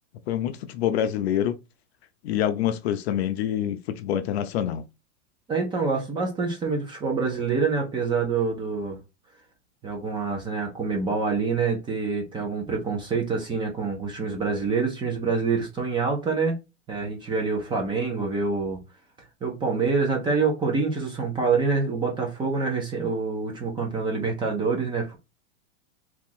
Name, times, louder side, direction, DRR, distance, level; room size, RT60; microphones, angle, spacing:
voice 1, 0.3-1.6 2.2-4.8, left 10 dB, 55° left, 0.5 m, -26 dB
voice 2, 5.5-9.0 9.8-16.6 16.9-18.8 19.4-25.2, right 4 dB, 10° right, 0.6 m, -26 dB
3.0 x 2.4 x 3.8 m
supercardioid pair, 155°, 38 cm